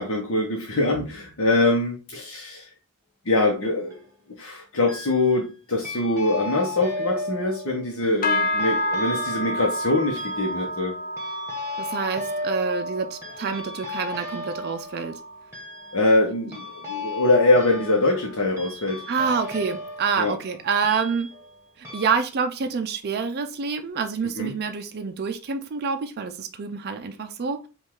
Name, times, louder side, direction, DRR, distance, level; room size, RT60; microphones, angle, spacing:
voice 1, 0.0-2.7 3.2-4.0 4.4-10.9 15.9-19.1 20.2-20.3 24.4-24.5, left 2 dB, 65° left, -1 dB, 0.9 m, -23 dB
sound 1, 3.6-4.1 4.9-5.5 5.8-21.6 21.8-22.2, left 2 dB, 10° right, 1.2 m, -35 dB
sound 2, 8.2-17.8 18.1-18.5 18.9-19.2 19.8-19.9, left 1 dB, 40° left, 0.5 m, -31 dB
voice 2, 11.8-15.2 19.1-21.3 21.8-27.7, right 5 dB, 45° right, 7 dB, 0.4 m, -27 dB
5.2 x 2.4 x 3.6 m, 0.33 s
head